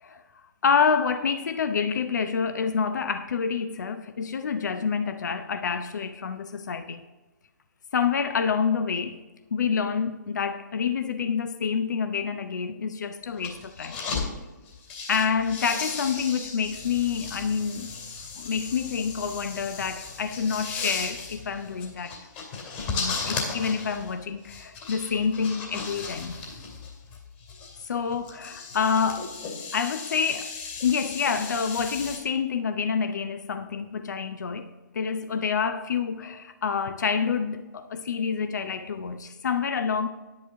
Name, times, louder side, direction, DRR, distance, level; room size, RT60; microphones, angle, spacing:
voice 1, 0.6-7.0 7.9-9.2 9.5-14.0 15.1-17.9 18.4-22.2 22.9-26.4 27.8-29.3 29.7-30.5 30.8-40.1, left 6 dB, 65° left, 0.7 m, -27 dB
sound 1, 13.3-14.3 14.7-32.2, left 4 dB, 30° left, 2.4 m, -36 dB
10.5 x 9.8 x 3.6 m
figure-of-eight pair, 140°, 10 cm